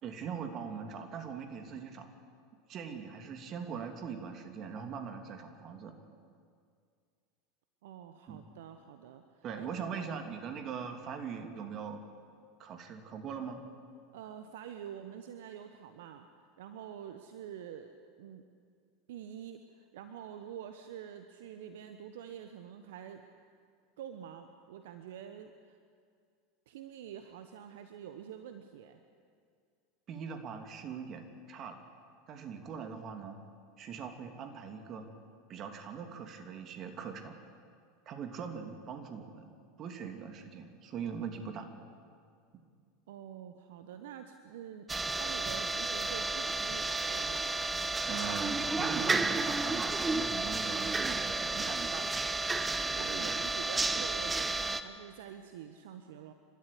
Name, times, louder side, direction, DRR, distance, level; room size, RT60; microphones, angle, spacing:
voice 1, 0.0-2.1 2.7-5.9 8.3-8.4 9.4-12.0 12.6-13.6 30.1-31.8 32.3-33.4 33.8-35.1 35.5-37.3 38.1-39.5 39.8-41.7 48.1-52.2 53.0-53.4 53.9-54.0, right 6 dB, 40° right, 5 dB, 2.9 m, -41 dB
voice 2, 7.8-9.7 14.1-18.4 19.1-23.2 24.0-25.8 26.7-29.0 43.1-44.9 45.2-47.6 52.9-56.3, right 9 dB, 70° right, 8 dB, 1.1 m, -47 dB
sound 1, 44.9-54.8, right 3 dB, 15° right, 1.1 m, -32 dB
30.0 x 13.0 x 8.4 m, 2.2 s
hypercardioid pair, 85°, 0 cm